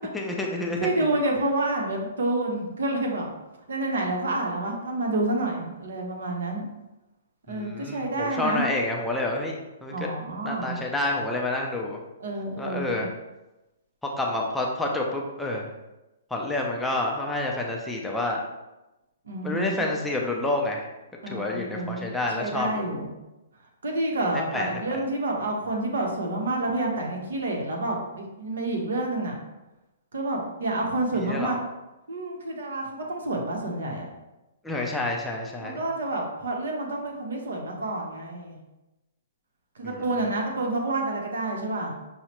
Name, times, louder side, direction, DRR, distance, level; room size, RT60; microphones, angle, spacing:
voice 1, 0.1-1.1 7.5-9.9 10.4-12.0 12.6-13.1 14.2-15.7 16.3-18.4 19.4-20.9 21.3-22.9 24.5-25.0 31.1-31.6 34.6-35.8 39.8-40.0, left 2 dB, 5° left, -1 dB, 0.4 m, -29 dB
voice 2, 0.8-3.3 3.7-6.7 7.5-8.6 9.9-10.8 12.2-13.1 19.3-19.9 21.2-23.1 23.8-29.4 30.1-31.6 32.1-34.1 35.6-38.6 39.8-41.9, right 2 dB, 80° right, 0 dB, 0.9 m, -29 dB
5.6 x 2.1 x 2.9 m, 1.0 s
hypercardioid pair, 155°, 0 cm